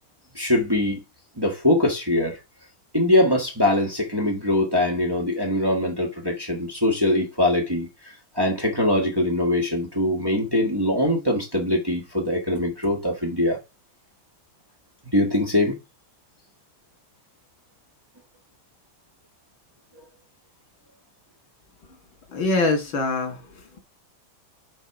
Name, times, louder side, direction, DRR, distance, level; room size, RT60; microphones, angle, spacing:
voice 1, 0.3-1.0 1.4-2.4 2.9-13.6 15.1-15.8, left 1 dB, 15° right, 1.4 m, -22 dB
voice 2, 22.3-23.4, left 3 dB, 85° left, 2.9 m, -23 dB
7.3 x 4.3 x 4.7 m
omnidirectional pair, 2.1 m